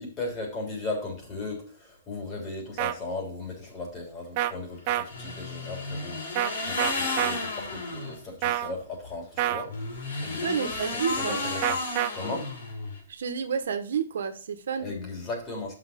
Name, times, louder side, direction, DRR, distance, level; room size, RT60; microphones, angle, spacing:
voice 1, 0.0-9.7 10.2-11.8 12.1-12.5 14.8-15.7, left 2 dB, 25° left, 0 dB, 3.4 m, -37 dB
sound 1, 2.8-2.9 4.4-4.5 4.9-5.0 6.4-6.5 6.8-7.3 8.4-8.7 9.4-9.7 11.6-12.1, right 14 dB, 40° right, 0.6 m, -26 dB
sound 2, 5.0-8.2 9.6-13.0, left 3 dB, 80° left, 4.2 m, -32 dB
voice 2, 10.4-11.4 13.1-14.9, right 7 dB, 80° right, 7 dB, 1.3 m, -30 dB
8.0 x 5.9 x 5.2 m, 0.40 s
hypercardioid pair, 155°, 0 cm